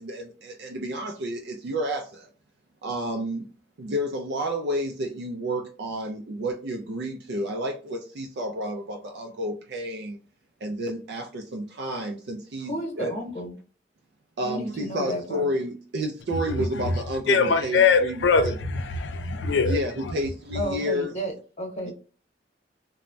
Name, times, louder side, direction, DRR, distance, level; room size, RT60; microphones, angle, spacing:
voice 1, 0.0-2.3 2.8-3.5 3.8-10.2 10.6-13.1 14.4-18.6 19.6-21.2, equal, 65° right, 0.4 m, -30 dB
voice 2, 12.7-13.5 14.4-15.4 20.5-21.3 21.6-21.9, equal, 40° left, 1.0 m, -32 dB
voice 3, 17.3-19.8, left 5 dB, 75° left, 0.4 m, -22 dB
3.1 x 2.1 x 2.5 m
head